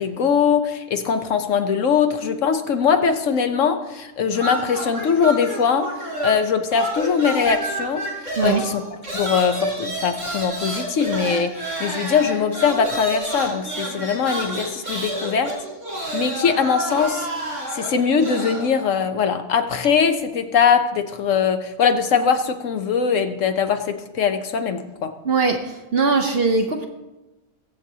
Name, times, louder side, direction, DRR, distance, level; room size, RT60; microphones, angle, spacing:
voice 1, 0.0-5.9 6.2-8.0 8.4-15.5 16.1-17.3 17.7-25.1, left 6 dB, 65° left, 7 dB, 1.0 m, -21 dB
sound 1, 4.3-6.5 6.7-18.7, right 1 dB, 80° right, 3.9 m, -29 dB
voice 2, 25.2-26.8, right 4 dB, 50° right, 4 dB, 0.8 m, -20 dB
22.5 x 7.5 x 2.8 m, 1.1 s
omnidirectional pair, 1.6 m